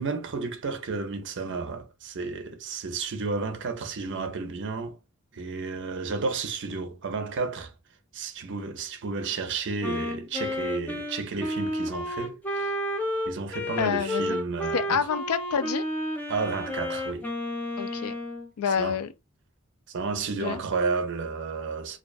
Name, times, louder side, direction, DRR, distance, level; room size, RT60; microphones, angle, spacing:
voice 1, 0.0-5.0 5.3-7.7 8.1-12.7 13.3-15.1 16.3-17.3 18.8-19.0 19.9-22.0, right 4 dB, 55° right, 0.5 m, -32 dB
Wind instrument woodwind instrument, 9.8-18.5, left 1 dB, 10° left, 0.5 m, -31 dB
voice 2, 13.8-14.4 14.7-15.8 17.8-18.1 18.6-19.1 20.4-20.6, left 7 dB, 90° left, 0.4 m, -27 dB
2.4 x 2.3 x 2.3 m
head